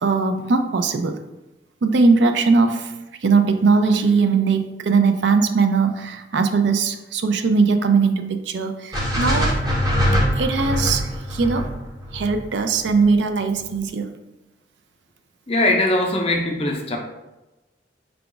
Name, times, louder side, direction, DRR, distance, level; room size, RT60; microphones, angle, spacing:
voice 1, 0.0-1.2 1.8-9.6 10.4-11.7 12.1-14.0, right 4 dB, 70° right, 7 dB, 0.4 m, -20 dB
sound 1, 8.9-13.1, equal, 20° right, 0.8 m, -23 dB
voice 2, 15.5-17.0, left 1 dB, 30° left, 1 dB, 0.5 m, -20 dB
4.8 x 2.3 x 3.8 m, 1.0 s
head